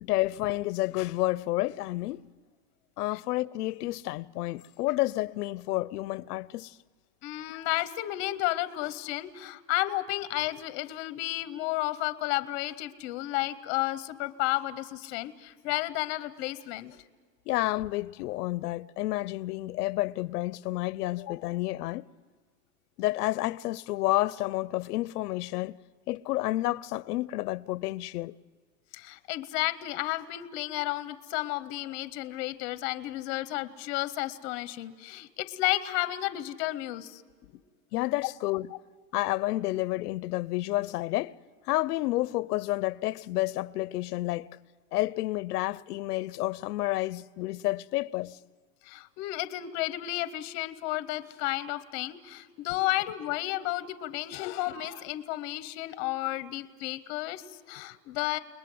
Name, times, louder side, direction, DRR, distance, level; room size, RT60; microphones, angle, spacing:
voice 1, 0.0-2.2 3.0-6.8 7.5-7.7 17.5-22.0 23.0-25.8 26.1-28.3 37.9-38.7 39.1-41.4 41.7-44.5 44.9-48.4 54.4-54.5, left 17 dB, 85° left, 0.6 m, -30 dB
voice 2, 7.2-17.0 28.9-37.2 37.5-37.6 38.2-38.3 48.8-58.4, left 17 dB, 30° left, 0.7 m, -32 dB
30.0 x 20.5 x 7.7 m
supercardioid pair, 170°, 45 cm